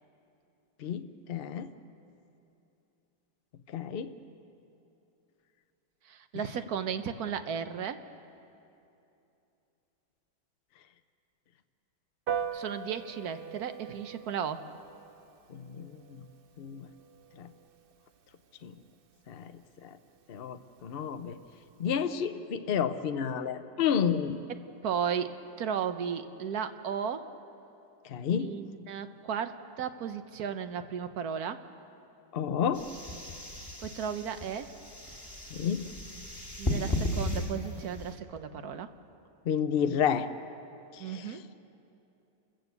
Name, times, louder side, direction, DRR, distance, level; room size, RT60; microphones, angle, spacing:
voice 1, 0.8-1.7 3.7-4.1 15.5-16.2 16.6-16.9 17.4-17.5 18.6-18.7 19.3-20.0 20.3-21.4 21.8-24.4 28.0-28.6 32.3-32.8 35.5-35.8 39.5-40.3 40.9-41.4, left 8 dB, 65° left, 9 dB, 0.5 m, -31 dB
voice 2, 6.0-8.0 12.5-14.6 24.8-27.3 28.4-31.6 33.8-34.7 36.6-38.9 41.0-41.4, right 7 dB, 60° right, 10 dB, 1.3 m, -35 dB
Piano, 12.3-22.0, right 7 dB, 90° right, 0.4 m, -43 dB
sound 1, 32.7-38.1, left 1 dB, 15° left, 2.1 m, -35 dB
29.5 x 14.0 x 8.1 m, 2.8 s
omnidirectional pair, 2.0 m